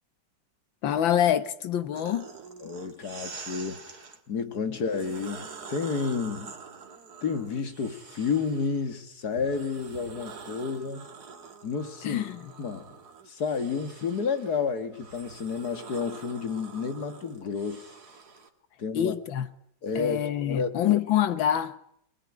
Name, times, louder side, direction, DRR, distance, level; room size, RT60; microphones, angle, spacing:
voice 1, 0.8-2.3 4.7-4.8 12.0-12.5 19.0-19.5 20.0-21.8, left 10 dB, 75° left, 1.9 m, -26 dB
sound 1, 1.9-4.2 4.8-8.9 9.3-18.5, right 5 dB, 55° right, 2.4 m, -46 dB
voice 2, 2.6-3.8 4.3-6.5 7.2-11.1 11.6-12.2 12.6-12.9 13.3-17.9 18.8-19.1 19.8-21.0, left 5 dB, 55° left, 2.2 m, -31 dB
22.5 x 20.5 x 9.7 m
omnidirectional pair, 2.1 m